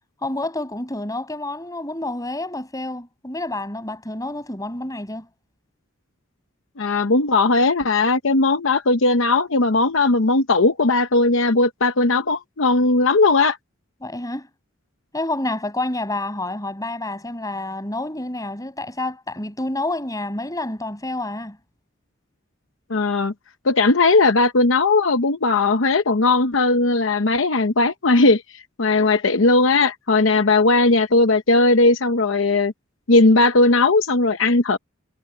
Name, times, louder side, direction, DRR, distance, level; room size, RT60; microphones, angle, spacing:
voice 1, 0.2-5.3 14.0-14.5 15.1-21.6, left 2 dB, 20° left, 7.2 m, -28 dB
voice 2, 6.8-13.6 22.9-23.3 23.6-32.7 33.1-34.8, left 3 dB, 70° left, 0.9 m, -18 dB
head